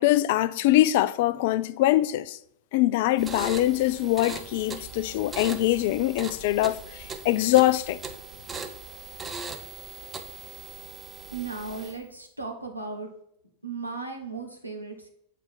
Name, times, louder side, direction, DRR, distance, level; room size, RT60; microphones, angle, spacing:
voice 1, 0.0-2.4 2.7-8.0, left 15 dB, 50° left, 0.4 m, -23 dB
sound 1, 3.2-12.1, right 4 dB, 15° right, 0.8 m, -40 dB
voice 2, 11.3-13.1 13.6-15.1, right 4 dB, 90° right, 1.4 m, -36 dB
7.9 x 4.6 x 5.4 m
figure-of-eight pair, 90°, 0 cm